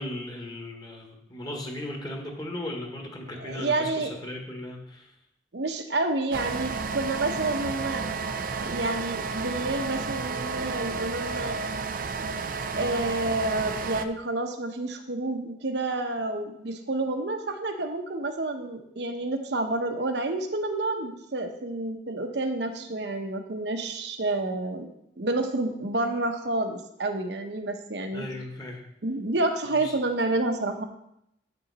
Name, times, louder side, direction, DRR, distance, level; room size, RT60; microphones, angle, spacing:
voice 1, 0.0-5.1 28.1-28.8 29.8-29.9, left 1 dB, 25° left, 1 dB, 1.5 m, -37 dB
voice 2, 3.4-4.1 5.5-8.1 8.6-11.6 12.7-24.9 25.2-28.2 29.0-30.8, right 2 dB, 70° right, 6 dB, 0.9 m, -29 dB
sound 1, 6.3-14.0, right 4 dB, 50° right, 0.5 m, -32 dB
9.1 x 7.0 x 4.1 m, 0.78 s
head